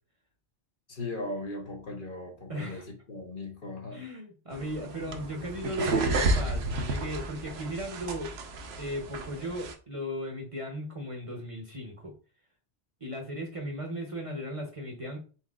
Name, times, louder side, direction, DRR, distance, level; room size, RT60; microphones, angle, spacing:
voice 1, 0.9-4.0, left 2 dB, 50° left, 0.9 m, -38 dB
voice 2, 2.5-2.9 3.9-8.3 8.8-12.1 13.0-15.2, equal, 35° right, 0.8 m, -36 dB
sound 1, 4.5-9.7, right 2 dB, 65° right, 0.9 m, -31 dB
4.1 x 4.1 x 2.4 m
omnidirectional pair, 1.2 m